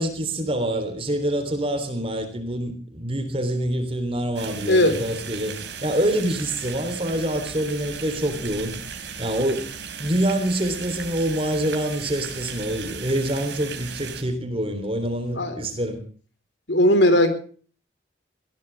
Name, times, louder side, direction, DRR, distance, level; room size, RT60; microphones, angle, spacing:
voice 1, 0.0-5.6 5.8-8.7 9.2-9.7 10.0-16.0, right 1 dB, 30° right, 9 dB, 3.5 m, -26 dB
sound 1, 4.4-14.2, right 6 dB, 65° right, 4.8 m, -36 dB
voice 2, 4.7-5.0 15.3-15.6 16.7-17.3, left 1 dB, 75° left, 9 dB, 4.5 m, -18 dB
22.0 x 18.0 x 3.5 m, 0.43 s
head